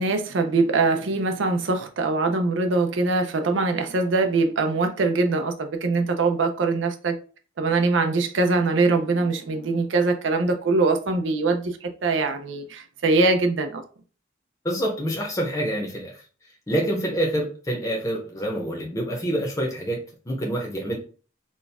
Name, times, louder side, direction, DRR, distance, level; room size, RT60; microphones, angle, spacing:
voice 1, 0.0-7.2 7.6-13.8, right 3 dB, 85° right, 0.6 m, -23 dB
voice 2, 14.6-16.2 16.7-21.0, right 1 dB, 15° left, 0.8 m, -27 dB
4.3 x 2.3 x 3.5 m
head